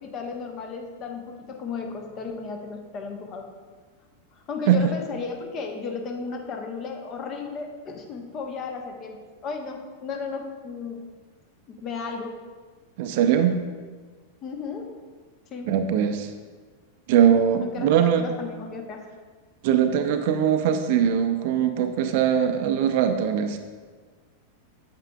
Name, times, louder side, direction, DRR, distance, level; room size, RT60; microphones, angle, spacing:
voice 1, 0.0-3.5 4.5-11.0 11.7-12.4 14.4-14.9 15.5-15.7 17.6-17.9 18.2-19.1, left 5 dB, 35° left, 3 dB, 1.0 m, -34 dB
voice 2, 13.0-13.6 15.7-16.3 17.1-18.3 19.6-23.6, right 9 dB, 50° right, 7 dB, 0.5 m, -21 dB
8.8 x 7.5 x 2.4 m, 1.5 s
figure-of-eight pair, 90°, 0 cm